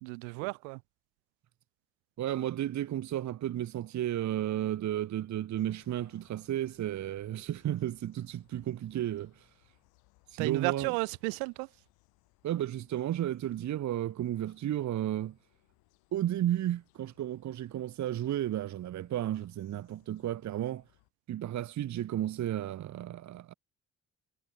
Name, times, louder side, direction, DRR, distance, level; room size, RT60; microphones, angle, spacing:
voice 1, 0.0-0.8 10.4-11.7, right 40 dB or more, 90° right, 0.9 m, -33 dB
voice 2, 2.2-9.3 10.3-10.9 12.4-15.4 16.1-20.8 21.3-23.5, right 12 dB, 50° right, 0.7 m, -33 dB
sound 1, 5.6-21.1, left 25 dB, 85° left, 6.5 m, -69 dB
hypercardioid pair, 50°, 36 cm